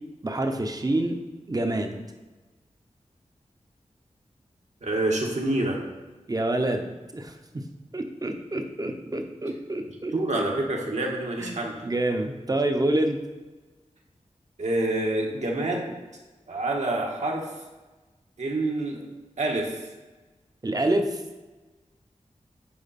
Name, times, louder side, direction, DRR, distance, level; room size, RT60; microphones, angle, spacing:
voice 1, 0.2-1.2 1.5-2.0 6.3-7.3 7.9-10.1 11.4-13.2 20.6-21.2, right 1 dB, 30° right, 5 dB, 0.8 m, -27 dB
voice 2, 4.8-5.8 10.1-11.8 14.6-15.9 16.5-17.4 18.4-19.0 19.4-19.7, right 2 dB, 70° right, 0 dB, 1.5 m, -27 dB
8.5 x 5.1 x 4.2 m, 1.2 s
wide cardioid pair, 100°, 13 cm